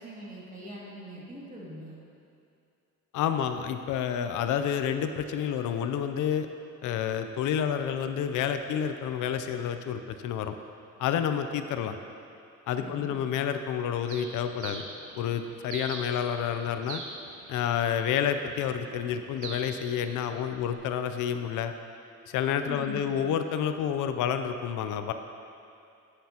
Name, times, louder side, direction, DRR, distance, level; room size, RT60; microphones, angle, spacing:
voice 1, 0.0-2.0 12.7-13.2 22.7-23.2, equal, 25° right, -5 dB, 2.2 m, -42 dB
voice 2, 3.1-6.5 6.8-10.6 11.0-12.0 12.7-14.8 15.2-17.0 17.5-21.7 22.3-25.1, left 8 dB, 80° left, 8 dB, 0.5 m, -29 dB
Bird, 14.1-20.7, right 3 dB, 80° right, 1.0 m, -44 dB
9.6 x 9.0 x 2.9 m, 2.5 s
cardioid pair, 90°, 30 cm